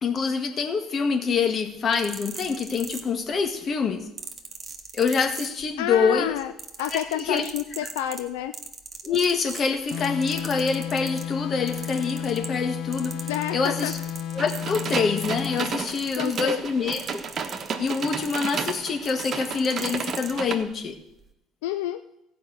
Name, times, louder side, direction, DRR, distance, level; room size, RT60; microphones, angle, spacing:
voice 1, 0.0-4.0 4.9-6.4 6.9-7.5 9.0-13.2 13.5-14.0 14.3-17.2 17.8-21.0, left 5 dB, 45° left, 7 dB, 1.6 m, -26 dB
sound 1, 1.8-3.5 4.2-5.9 6.2-11.3 11.7-12.7 12.9-20.4 21.1-21.3, right 5 dB, 30° right, 1.6 m, -40 dB
voice 2, 5.8-6.5 6.8-8.5 13.3-13.9 16.2-16.6 21.6-22.0, left 12 dB, 85° left, 10 dB, 0.4 m, -29 dB
sound 2, 9.9-15.7, left 10 dB, 65° left, 0.8 m, -33 dB
sound 3, 14.4-20.6, right 6 dB, 50° right, 1.3 m, -33 dB
14.5 x 5.4 x 8.0 m, 0.84 s
supercardioid pair, 70°, 0 cm